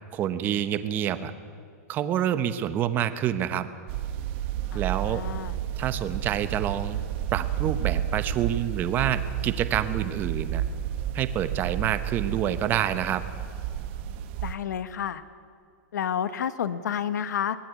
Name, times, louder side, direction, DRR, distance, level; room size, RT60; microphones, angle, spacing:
voice 1, 0.1-1.3 1.9-3.7 4.7-5.2 5.8-7.0 7.3-10.6 11.1-13.2, right 10 dB, 20° right, 11 dB, 1.0 m, -27 dB
sound 1, 3.9-14.6, right 10 dB, 40° right, 1.4 m, -31 dB
voice 2, 4.7-5.6 14.4-15.2 15.9-17.6, left 8 dB, 90° left, 13 dB, 1.2 m, -30 dB
23.5 x 19.0 x 8.3 m, 2.3 s
supercardioid pair, 165°, 9 cm